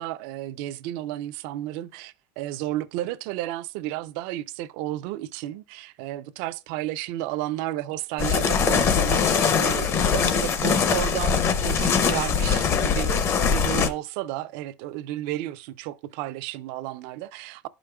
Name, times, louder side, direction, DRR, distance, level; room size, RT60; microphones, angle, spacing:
voice 1, 0.0-17.7, right 14 dB, 75° right, 0.4 m, -32 dB
sound 1, 8.2-13.9, left 6 dB, 35° left, 0.6 m, -22 dB
11.5 x 5.0 x 2.2 m
cardioid pair, 145°, 8 cm